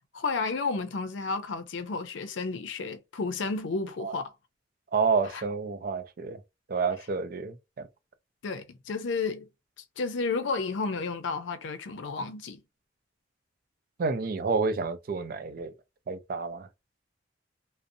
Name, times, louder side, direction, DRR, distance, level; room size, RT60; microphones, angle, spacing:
voice 1, 0.1-4.3 5.3-5.4 8.4-9.5 10.0-12.6, left 4 dB, 85° left, 0.5 m, -32 dB
voice 2, 4.9-6.4 6.7-7.9 14.0-15.7 16.1-16.7, right 4 dB, 50° right, 0.4 m, -29 dB
2.5 x 2.0 x 2.6 m
head